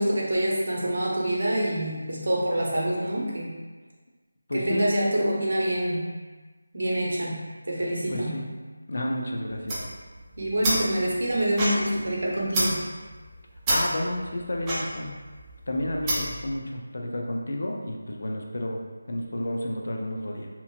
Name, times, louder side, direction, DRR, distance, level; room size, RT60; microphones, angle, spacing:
voice 1, 0.0-3.6 4.5-6.0 6.7-8.4 10.4-12.8, right 1 dB, 70° right, -3 dB, 0.8 m, -26 dB
voice 2, 4.5-4.9 8.1-8.5 8.9-9.8 13.7-15.1 15.7-18.8 19.1-20.5, left 1 dB, 60° left, 1 dB, 0.4 m, -31 dB
sound 1, 9.5-16.5, right 1 dB, 15° right, 0.4 m, -30 dB
2.9 x 2.4 x 2.7 m, 1.3 s
figure-of-eight pair, 175°, 0 cm